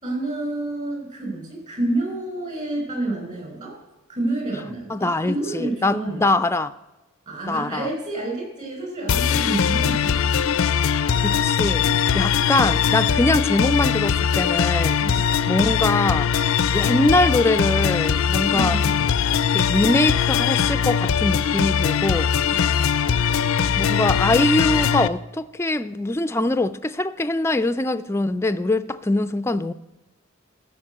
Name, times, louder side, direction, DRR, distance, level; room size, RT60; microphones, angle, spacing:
voice 1, 0.0-3.8 4.1-6.2 7.3-10.3 15.0-15.2 18.5-19.0 22.5-22.9, right 2 dB, 40° right, 5.2 m, -29 dB
voice 2, 4.9-6.7 7.5-7.9 11.1-16.3 16.7-18.8 19.5-22.3 23.8-29.7, left 2 dB, 15° left, 0.4 m, -23 dB
sound 1, 9.1-25.1, left 7 dB, 85° left, 0.5 m, -21 dB
14.0 x 5.5 x 7.9 m
head